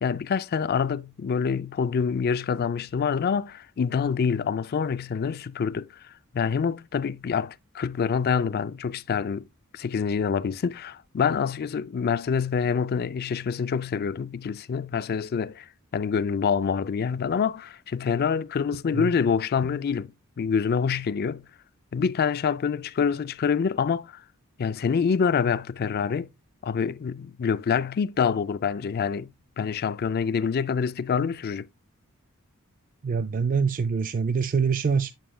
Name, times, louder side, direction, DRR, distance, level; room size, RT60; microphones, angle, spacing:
voice 1, 0.0-5.9 6.3-9.5 9.7-15.7 15.9-21.4 21.9-24.2 24.6-26.3 26.6-29.3 29.6-31.7, left 6 dB, 45° left, 0.4 m, -26 dB
voice 2, 33.0-35.1, right 5 dB, 40° right, 0.4 m, -25 dB
9.0 x 6.2 x 2.2 m
head